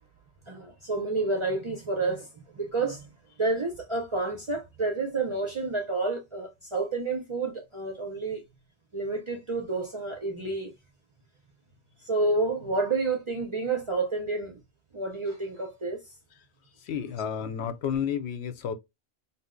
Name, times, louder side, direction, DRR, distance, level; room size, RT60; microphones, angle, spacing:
voice 1, 0.5-2.3 2.5-3.1 3.4-8.4 8.9-10.7 12.0-14.6 14.9-16.0, right 3 dB, 40° right, 0.4 m, -29 dB
voice 2, 16.8-18.7, left 8 dB, 75° left, 0.8 m, -31 dB
2.6 x 2.0 x 3.6 m
omnidirectional pair, 1.1 m